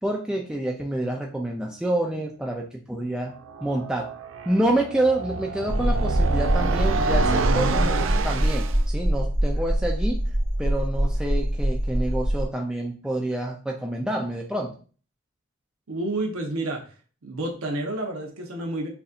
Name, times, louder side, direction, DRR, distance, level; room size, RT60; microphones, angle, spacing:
voice 1, 0.0-3.3 3.6-4.1 4.5-10.2 10.6-14.7, right 1 dB, 5° right, 0 dB, 0.4 m, -27 dB
sound 1, 3.4-8.8, right 4 dB, 65° right, 0.4 m, -28 dB
sound 2, 5.7-12.5, equal, 45° right, 1.9 m, -24 dB
voice 2, 15.9-16.8 17.2-18.9, right 2 dB, 90° right, 1 dB, 0.8 m, -29 dB
6.8 x 2.6 x 2.4 m, 0.39 s
head